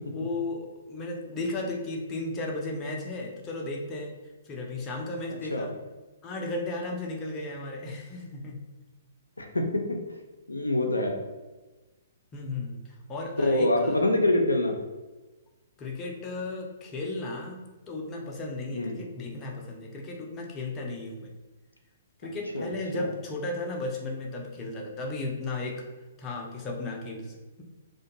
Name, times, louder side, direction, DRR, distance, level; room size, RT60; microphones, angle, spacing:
voice 1, 0.1-4.2 4.4-5.7 6.2-8.6 12.3-12.8 13.1-14.0 15.8-21.3 22.2-25.9 26.2-27.6, left 2 dB, 20° left, 0 dB, 0.4 m, -34 dB
voice 2, 10.5-11.2 13.4-14.8 18.7-19.0 22.5-23.1, left 1 dB, 85° left, 3 dB, 0.4 m, -25 dB
2.4 x 2.2 x 2.8 m, 1.2 s
figure-of-eight pair, 120°, 0 cm